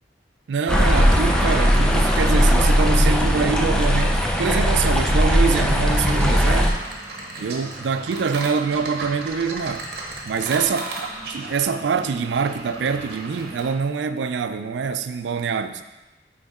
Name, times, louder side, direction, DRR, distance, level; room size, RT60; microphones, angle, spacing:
voice 1, 0.5-6.7 7.4-9.9 10.2-11.1 11.3-15.8, right 5 dB, 90° right, 10 dB, 0.4 m, -25 dB
sound 1, 0.7-6.7, equal, 5° left, 0.5 m, -18 dB
sound 2, 5.9-13.7, right 2 dB, 60° right, 1.1 m, -35 dB
9.3 x 3.9 x 3.6 m, 1.1 s
head